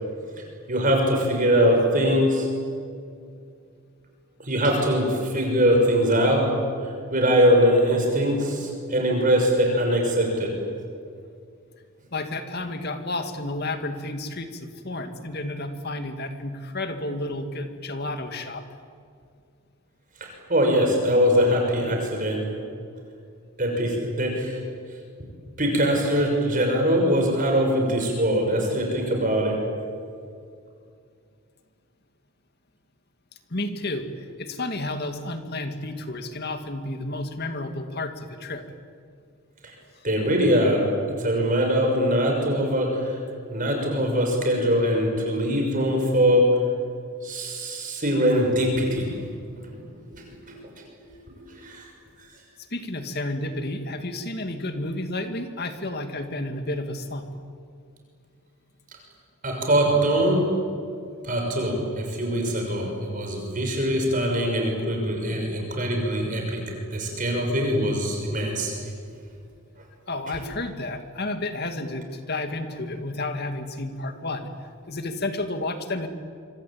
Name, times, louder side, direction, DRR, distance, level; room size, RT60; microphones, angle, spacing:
voice 1, 0.7-2.5 4.4-6.6 7.1-10.6 20.2-22.6 23.6-24.6 25.6-29.6 39.6-39.7 40.0-40.9 41.2-43.1 43.5-46.5 47.2-49.3 49.6-49.8 50.1-50.5 51.3-51.8 59.4-60.5 61.2-66.6 66.9-68.7, equal, 40° right, 1 dB, 6.3 m, -22 dB
voice 2, 12.1-18.6 33.5-38.6 52.7-57.3 70.1-74.5 74.9-76.1, left 2 dB, 45° left, 7 dB, 2.3 m, -31 dB
25.5 x 25.5 x 8.9 m, 2.3 s
head